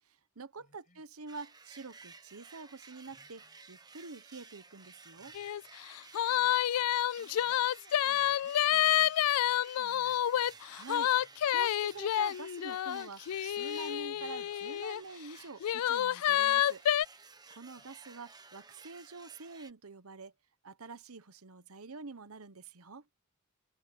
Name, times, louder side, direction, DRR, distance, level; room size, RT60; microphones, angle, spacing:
voice 1, 0.1-5.4 10.6-16.8 17.2-20.3 20.6-23.0, right 4 dB, 75° right, 1.1 m, -47 dB
voice 2, 0.6-1.0 6.3-6.6 7.1-10.5 17.8-18.0, left 2 dB, 35° left, 7.9 m, -64 dB
sound 1, 1.3-19.7, right 4 dB, 20° right, 1.3 m, -55 dB
sound 2, 5.4-5.6 5.9-15.0 15.6-17.1, left 11 dB, 80° left, 0.3 m, -29 dB
head